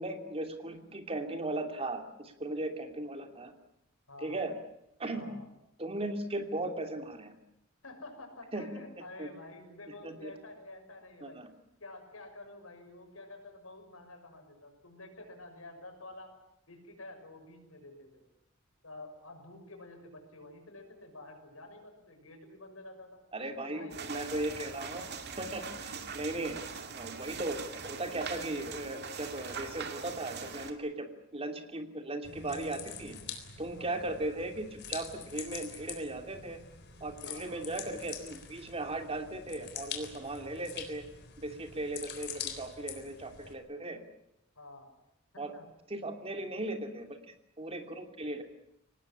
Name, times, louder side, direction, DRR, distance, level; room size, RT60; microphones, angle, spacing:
voice 1, 0.0-3.5 4.2-4.5 5.0-5.3 5.8-7.4 8.5-8.7 9.0-9.3 10.0-10.3 11.2-11.5 23.3-25.0 25.4-26.6 26.9-33.2 33.6-36.6 37.0-41.0 41.4-44.0 45.4-45.5 45.9-47.2 47.6-48.4, right 2 dB, 30° right, 5 dB, 2.8 m, -37 dB
voice 2, 4.1-4.4 5.1-5.5 7.8-11.4 11.8-16.3 16.7-18.2 18.8-23.2 23.6-25.2 33.8-34.0 37.2-37.7 44.5-44.9 45.3-45.7, left 2 dB, 85° left, 4 dB, 6.4 m, -49 dB
sound 1, 23.9-30.7, right 5 dB, 55° right, 2.5 m, -42 dB
sound 2, 32.2-43.5, left 7 dB, 55° left, 3.9 m, -45 dB
24.5 x 19.0 x 9.9 m, 0.83 s
head